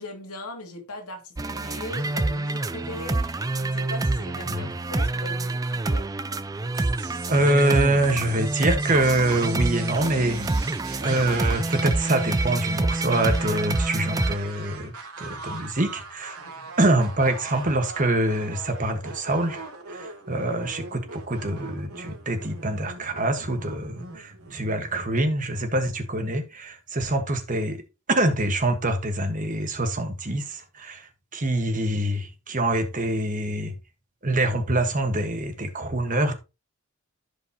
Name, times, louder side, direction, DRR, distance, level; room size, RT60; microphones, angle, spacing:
voice 1, 0.0-6.1 16.4-16.7 20.3-20.4, left 2 dB, 80° left, 2.4 m, -39 dB
sound 1, 1.4-14.4, right 2 dB, 15° right, 0.4 m, -27 dB
sound 2, 6.7-25.2, right 4 dB, 80° right, 2.8 m, -41 dB
voice 2, 7.3-16.4 16.8-27.8 28.1-33.7 34.2-36.4, right 1 dB, 35° right, 1.4 m, -25 dB
15.0 x 5.1 x 2.9 m
head